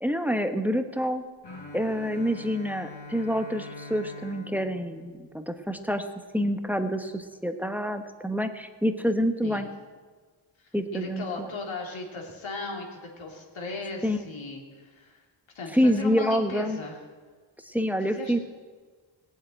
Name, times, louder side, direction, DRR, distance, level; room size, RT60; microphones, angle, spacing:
voice 1, 0.0-1.2 1.7-6.0 6.3-9.7 10.7-11.5 14.0-14.2 15.7-16.8 17.6-18.4, equal, 5° right, 7 dB, 1.0 m, -27 dB
Bowed string instrument, 1.4-6.3, left 2 dB, 55° left, 4.1 m, -44 dB
voice 2, 10.6-15.2 15.5-17.0 18.0-18.4, left 3 dB, 75° left, 0 dB, 3.1 m, -37 dB
17.5 x 8.0 x 9.1 m, 1.5 s
wide cardioid pair, 100°, 47 cm